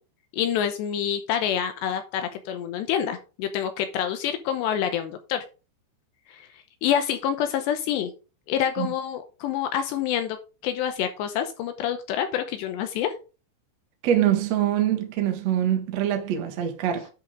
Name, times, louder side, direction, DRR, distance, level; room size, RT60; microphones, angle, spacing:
voice 1, 0.3-5.5 6.3-6.5 6.8-8.1 8.5-10.4 10.6-13.1, left 9 dB, 80° left, 3.0 m, -27 dB
voice 2, 14.0-17.1, right 10 dB, 60° right, 1.9 m, -24 dB
10.5 x 6.4 x 3.7 m
omnidirectional pair, 5.1 m